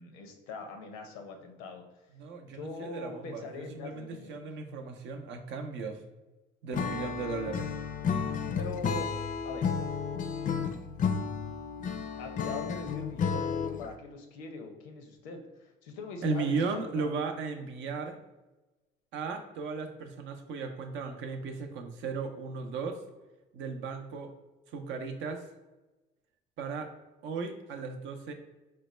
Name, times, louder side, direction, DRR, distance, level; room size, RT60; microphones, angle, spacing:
voice 1, 0.0-2.0 2.4-4.4 8.6-9.1 9.4-9.7 11.3-11.4 12.2-17.1, left 3 dB, 90° left, 5 dB, 0.5 m, -42 dB
voice 2, 2.1-6.0 6.6-7.7 16.2-18.2 19.1-23.0 23.5-24.3 24.7-25.4 26.6-26.9 27.2-28.3, right 4 dB, 70° right, 6 dB, 0.6 m, -36 dB
Acoustic guitar / Strum, 6.7-13.9, left 6 dB, 40° left, 0.4 m, -32 dB
4.1 x 2.1 x 3.1 m, 1.1 s
supercardioid pair, 65°, 20 cm